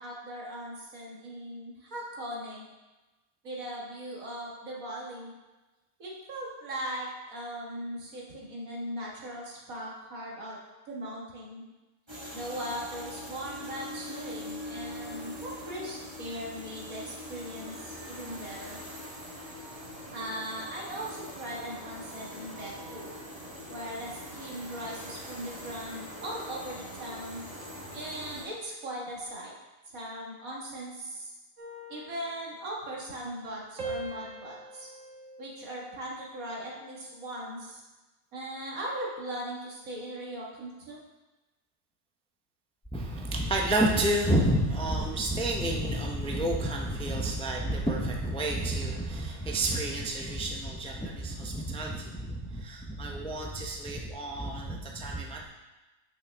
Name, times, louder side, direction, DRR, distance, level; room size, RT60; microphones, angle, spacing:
voice 1, 0.0-2.7 3.4-5.3 6.0-10.6 10.9-11.7 12.3-18.8 20.1-23.1 23.7-27.4 27.9-29.5 29.9-31.3 31.9-34.9 35.4-37.8 38.3-41.0, equal, 85° right, -3 dB, 2.0 m, -39 dB
sound 1, 12.1-28.4, equal, 20° right, 1.1 m, -42 dB
sound 2, 31.6-33.5 33.8-36.3 36.8-37.2, right 1 dB, 65° right, 1.6 m, -43 dB
voice 2, 42.9-55.5, right 1 dB, 10° left, -1 dB, 0.4 m, -30 dB
8.6 x 5.7 x 3.4 m, 1.1 s
omnidirectional pair, 1.4 m